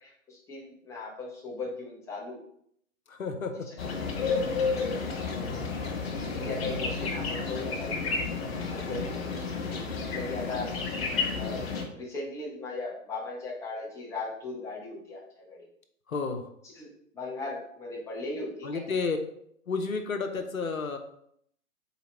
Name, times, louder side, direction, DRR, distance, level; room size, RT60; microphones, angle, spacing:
voice 1, 0.0-2.4 4.7-4.8 6.4-8.1 8.7-9.0 10.1-10.7 11.3-15.6 16.8-18.7, left 3 dB, 5° left, -5 dB, 0.8 m, -38 dB
voice 2, 3.1-3.7 5.3-5.7 8.9-9.2 16.1-16.5 18.6-19.2 19.7-21.0, left 4 dB, 80° left, 5 dB, 0.7 m, -32 dB
sound 1, 3.8-11.8, left 4 dB, 50° left, 1.1 m, -31 dB
4.1 x 2.9 x 4.3 m, 0.70 s
figure-of-eight pair, 115°, 41 cm